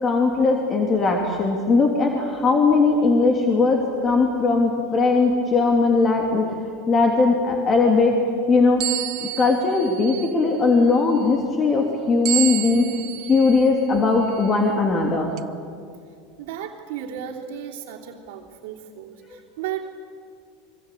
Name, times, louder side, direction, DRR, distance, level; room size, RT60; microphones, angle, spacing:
voice 1, 0.0-6.5 6.9-8.1 8.5-8.8 9.2-12.9 13.3-15.3, left 3 dB, 25° left, 2 dB, 3.0 m, -19 dB
sound 1, 8.8-10.5 12.2-13.7 14.3-14.5 15.4-15.5, right 19 dB, 50° right, 0.8 m, -29 dB
voice 2, 16.4-19.9, right 9 dB, 75° right, 0 dB, 3.1 m, -34 dB
25.0 x 24.0 x 8.4 m, 2.3 s
supercardioid pair, 125°, 0 cm